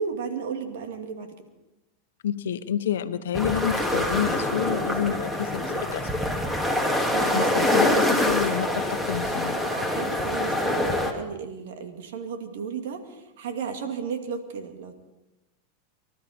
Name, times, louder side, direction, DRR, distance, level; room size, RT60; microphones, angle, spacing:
voice 1, 0.0-1.3 7.1-8.0 9.7-14.9, right 6 dB, 75° right, 6 dB, 2.3 m, -33 dB
voice 2, 2.2-6.1 7.2-9.6, left 9 dB, 80° left, 10 dB, 1.1 m, -29 dB
sound 1, 3.3-11.1, left 1 dB, 5° right, 2.4 m, -25 dB
25.0 x 12.5 x 4.4 m, 0.99 s
hypercardioid pair, 110°, 0 cm